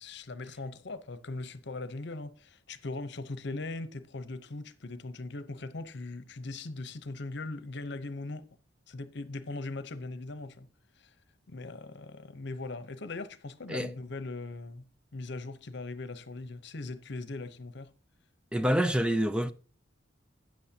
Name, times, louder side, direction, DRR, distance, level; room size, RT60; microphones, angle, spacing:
voice 1, 0.0-8.4 8.9-10.7 11.0-11.1 11.5-14.9 15.1-17.9, left 2 dB, 60° left, 0.9 m, -40 dB
voice 2, 18.5-19.5, equal, 5° right, 0.4 m, -27 dB
12.5 x 9.3 x 2.8 m
head